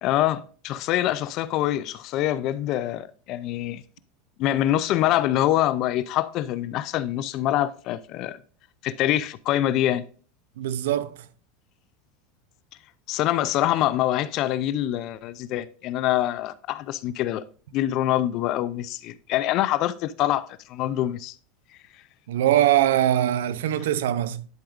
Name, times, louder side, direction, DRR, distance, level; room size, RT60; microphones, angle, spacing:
voice 1, 0.0-3.8 4.4-8.4 8.8-10.0 13.1-17.4 17.7-21.4, left 13 dB, 50° left, 0.4 m, -25 dB
voice 2, 10.6-11.2 22.3-24.5, right 12 dB, 85° right, 0.5 m, -22 dB
10.5 x 4.8 x 2.5 m
supercardioid pair, 130°, 0 cm